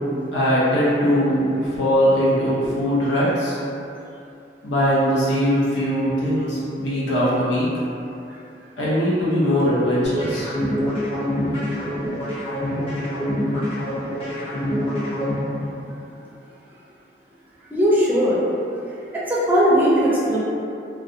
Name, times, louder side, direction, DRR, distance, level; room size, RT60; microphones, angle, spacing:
voice 1, 0.3-3.6 4.6-7.7 8.8-10.5, equal, 75° left, -9 dB, 0.8 m, -20 dB
sound 1, 10.0-16.0, equal, 30° left, 0.6 m, -26 dB
voice 2, 17.7-18.4 19.1-20.4, equal, 10° right, -7 dB, 0.4 m, -18 dB
2.4 x 2.2 x 2.6 m, 2.6 s
head